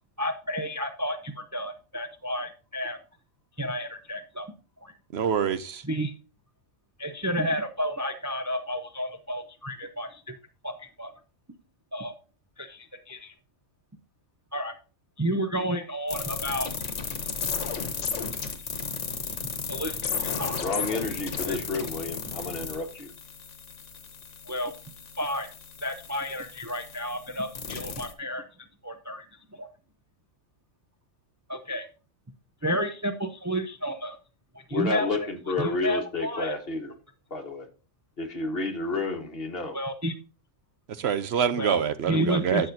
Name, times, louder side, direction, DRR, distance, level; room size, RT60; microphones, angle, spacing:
voice 1, 0.2-3.0 3.6-4.5 4.8-4.9 5.8-6.1 7.0-10.3 10.6-11.1 11.9-12.1 12.6-13.3 14.5-14.7 15.2-16.7 19.7-20.6 21.5-21.6 24.5-24.7 25.2-25.5 25.8-28.4 28.8-29.3 29.5-29.7 31.5-31.9 32.6-34.2 34.5-35.2 35.6-36.6 39.7-40.1 41.5-42.7, equal, 20° right, 0.6 m, -31 dB
voice 2, 5.1-5.8 41.0-42.7, right 7 dB, 65° right, 0.9 m, -26 dB
sound 1, 16.1-28.1, left 5 dB, 75° left, 1.5 m, -34 dB
voice 3, 20.6-23.1 34.7-36.9 37.3-37.7 38.2-39.8, left 3 dB, 50° left, 1.7 m, -30 dB
12.0 x 6.8 x 2.6 m
omnidirectional pair, 1.3 m